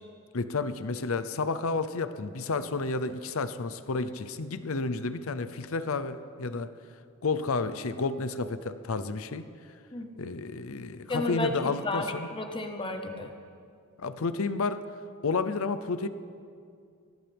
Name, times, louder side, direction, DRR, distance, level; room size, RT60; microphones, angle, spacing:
voice 1, 0.3-6.7 7.2-9.5 10.2-12.3 14.0-14.8 15.2-16.1, left 4 dB, 70° left, 12 dB, 0.7 m, -31 dB
voice 2, 9.9-10.3 11.1-13.3, left 2 dB, 25° left, 4 dB, 1.0 m, -33 dB
23.5 x 17.0 x 3.5 m, 2.3 s
head